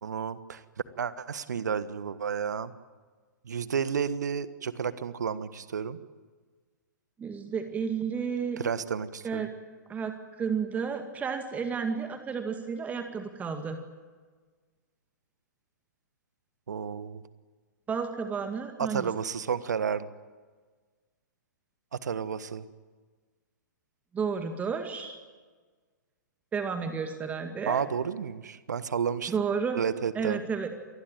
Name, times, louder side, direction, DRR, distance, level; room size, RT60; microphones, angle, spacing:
voice 1, 0.0-0.6 1.0-2.7 3.4-6.0 8.6-9.5 16.7-17.2 18.8-20.1 21.9-22.6 27.7-29.3 29.7-30.4, right 7 dB, 65° right, 15 dB, 1.4 m, -31 dB
voice 2, 7.2-8.6 9.2-9.5 9.9-13.8 17.9-19.1 24.1-25.2 26.5-27.8 29.3-29.8 30.2-30.7, right 6 dB, 15° right, 6 dB, 2.2 m, -32 dB
28.0 x 20.5 x 9.1 m, 1.4 s
figure-of-eight pair, 115°, 10 cm